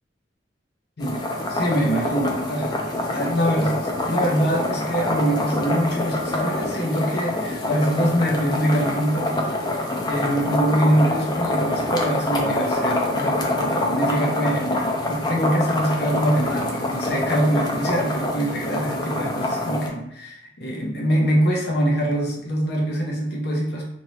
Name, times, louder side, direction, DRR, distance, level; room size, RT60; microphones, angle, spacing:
voice 1, 1.0-23.8, equal, 65° left, -2 dB, 0.8 m, -24 dB
sound 1, 1.0-19.9, left 1 dB, 25° left, 0.5 m, -26 dB
2.8 x 2.7 x 3.2 m, 0.77 s
head